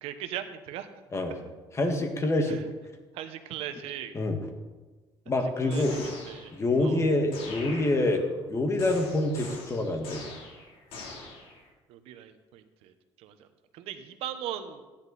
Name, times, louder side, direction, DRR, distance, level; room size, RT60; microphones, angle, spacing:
voice 1, 0.0-0.9 2.5-2.6 3.1-4.1 5.6-6.0 6.3-6.5 6.8-7.0 11.9-13.5 13.7-14.8, right 11 dB, 85° right, 9 dB, 1.0 m, -39 dB
voice 2, 1.7-2.6 4.1-4.4 5.3-6.0 6.5-8.2 8.5-10.2, left 2 dB, 30° left, 5 dB, 1.8 m, -26 dB
sound 1, 5.7-6.7 7.3-8.3 8.8-11.7, left 3 dB, 75° left, 3.2 m, -43 dB
15.0 x 10.0 x 4.1 m, 1.3 s
cardioid pair, 110°, 10 cm